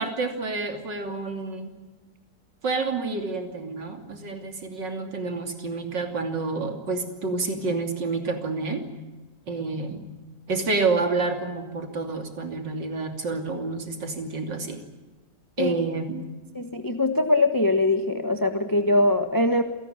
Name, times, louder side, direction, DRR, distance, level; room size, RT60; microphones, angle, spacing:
voice 1, 0.0-1.7 2.6-8.8 9.5-10.0 10.5-14.8 15.6-16.2, right 3 dB, 90° right, 5 dB, 3.6 m, -28 dB
voice 2, 16.5-19.6, left 2 dB, 15° left, 7 dB, 1.2 m, -22 dB
28.0 x 18.5 x 9.0 m, 1.2 s
omnidirectional pair, 1.9 m